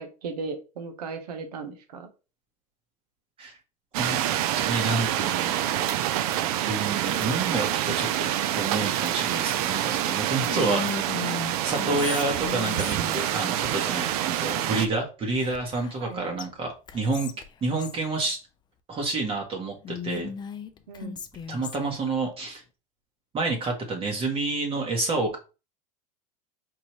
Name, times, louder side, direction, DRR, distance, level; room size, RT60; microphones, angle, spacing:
voice 1, 0.0-2.1 16.0-16.4 20.9-21.2, right 4 dB, 90° right, 7 dB, 0.9 m, -36 dB
sound 1, 3.9-14.9, right 12 dB, 70° right, 0.5 m, -27 dB
voice 2, 4.6-5.9 6.6-8.3 8.6-11.2 11.6-17.3 17.6-18.4 18.9-20.3 21.5-22.6 23.3-25.4, right 3 dB, 30° right, 2 dB, 1.1 m, -29 dB
Whispering, 10.5-13.3 15.4-16.1 16.4-16.5 16.9-18.0 19.8-22.0, left 7 dB, 20° left, 0.4 m, -36 dB
4.6 x 2.6 x 3.0 m, 0.32 s
supercardioid pair, 115°, 20 cm